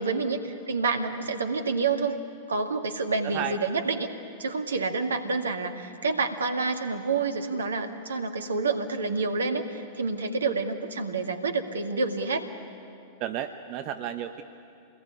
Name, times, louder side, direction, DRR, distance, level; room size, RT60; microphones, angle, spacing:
voice 1, 0.0-2.2 2.5-4.1 4.4-12.5, right 4 dB, 75° right, 6 dB, 2.1 m, -28 dB
voice 2, 3.2-3.6 13.2-14.4, right 10 dB, 45° right, 7 dB, 1.1 m, -32 dB
28.0 x 20.0 x 9.8 m, 2.5 s
figure-of-eight pair, 95°, 0 cm